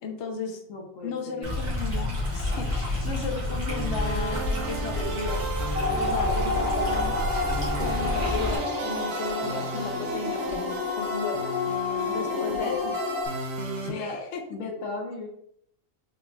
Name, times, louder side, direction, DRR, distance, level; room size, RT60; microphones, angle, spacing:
voice 1, 0.0-0.6 1.0-5.5 6.0-7.3 7.7-11.5 12.1-13.0 13.8-14.4, left 5 dB, 65° left, 4 dB, 1.0 m, -35 dB
voice 2, 0.7-1.6 12.1-12.9 13.8-15.3, left 3 dB, 85° left, 1 dB, 1.3 m, -37 dB
Stream, 1.4-8.6, left 1 dB, 65° right, 1.7 m, -29 dB
sound 1, 3.7-13.9, right 4 dB, 90° right, 1.2 m, -34 dB
sound 2, 5.7-13.3, left 4 dB, 5° right, 1.1 m, -30 dB
4.6 x 4.1 x 2.3 m, 0.71 s
omnidirectional pair, 1.3 m